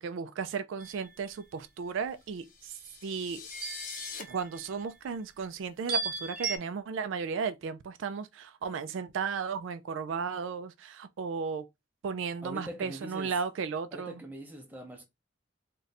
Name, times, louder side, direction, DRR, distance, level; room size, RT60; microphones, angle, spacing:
voice 1, 0.0-2.7 3.0-3.5 4.3-11.6 12.0-14.2, right 5 dB, 75° right, 0.3 m, -35 dB
sound 1, 0.8-1.4 3.5-4.9 5.9-6.6, right 4 dB, 50° right, 0.7 m, -36 dB
sound 2, 2.3-4.2, left 6 dB, 45° left, 0.6 m, -43 dB
voice 2, 12.4-13.3 13.9-15.1, equal, 10° right, 0.6 m, -43 dB
2.5 x 2.2 x 4.0 m
head